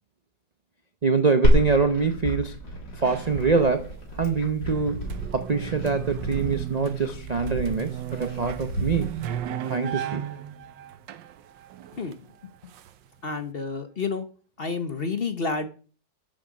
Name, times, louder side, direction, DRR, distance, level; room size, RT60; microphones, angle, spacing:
voice 1, 1.0-2.6 3.0-9.1 9.7-10.3, right 4 dB, 45° right, 0.5 m, -24 dB
Glass, 1.4-9.4, equal, 65° left, 3.6 m, -28 dB
sound 1, 3.0-4.1 4.4-13.3, right 10 dB, 80° right, 1.5 m, -36 dB
voice 2, 13.2-14.3 14.6-15.7, left 4 dB, 40° left, 1.0 m, -30 dB
13.0 x 7.7 x 5.2 m
omnidirectional pair, 2.0 m